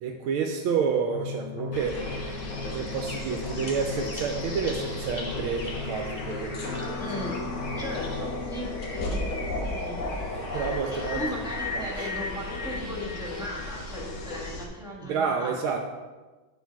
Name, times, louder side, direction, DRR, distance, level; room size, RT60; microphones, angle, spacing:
voice 1, 0.0-2.0 2.3-2.5 2.7-7.0 7.6-8.0 10.3-11.5 11.7-12.1 15.0-15.8, right 6 dB, 85° right, 3 dB, 1.5 m, -30 dB
sound 1, 1.1-10.1, left 3 dB, 85° left, 2.8 m, -39 dB
sound 2, 1.7-14.7, left 2 dB, 50° left, 1.0 m, -34 dB
voice 2, 7.0-7.5 7.8-9.3 9.6-10.1 10.5-15.6, left 1 dB, ahead, -4 dB, 1.1 m, -37 dB
8.9 x 4.6 x 4.6 m, 1.2 s
omnidirectional pair, 2.3 m